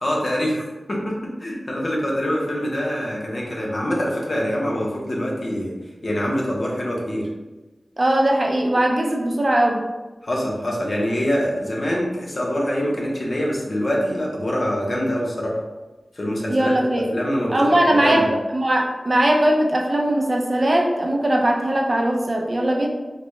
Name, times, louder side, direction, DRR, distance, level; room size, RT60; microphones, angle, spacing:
voice 1, 0.0-5.7 6.0-7.3 10.2-15.6 16.1-16.7 17.1-18.2, equal, 55° left, -3 dB, 0.8 m, -24 dB
voice 2, 8.0-9.8 16.5-17.1 17.5-22.9, right 1 dB, 45° right, 1 dB, 0.5 m, -20 dB
4.0 x 2.2 x 3.0 m, 1.2 s
wide cardioid pair, 55°, 0 cm